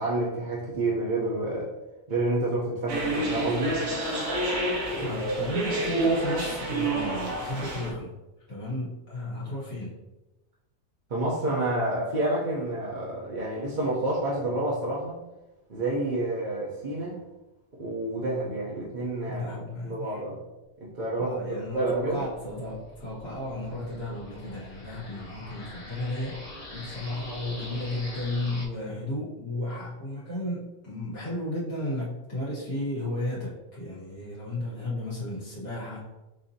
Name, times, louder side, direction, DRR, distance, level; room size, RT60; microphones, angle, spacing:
voice 1, 0.0-1.7 2.1-3.8 4.9-5.5 11.1-15.2 15.7-17.2 17.8-19.4 19.8-20.4 20.8-21.3 21.7-22.2 25.2-25.3, right 2 dB, 45° right, -5 dB, 0.7 m, -29 dB
sound 1, 2.9-7.9, right 2 dB, 75° right, 1.4 m, -28 dB
voice 2, 5.0-8.1 8.5-9.9 19.3-20.2 21.2-36.0, left 1 dB, 85° left, -8 dB, 2.2 m, -34 dB
sound 2, 21.5-28.6, left 1 dB, 35° left, 0.7 m, -44 dB
6.4 x 2.7 x 2.8 m, 1.0 s
omnidirectional pair, 1.5 m